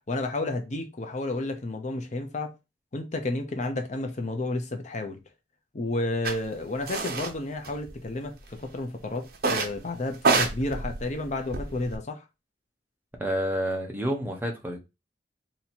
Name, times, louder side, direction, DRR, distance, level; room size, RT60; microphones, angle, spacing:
voice 1, 0.0-2.5 2.9-5.2 5.7-12.2, left 2 dB, 40° left, 0.6 m, -31 dB
sound 1, 6.2-6.4 6.9-7.3 7.6-8.4 9.4-9.8 10.1-12.0, right 4 dB, 60° right, 0.7 m, -27 dB
voice 2, 13.2-14.8, equal, 10° right, 0.8 m, -29 dB
2.8 x 2.8 x 4.3 m
head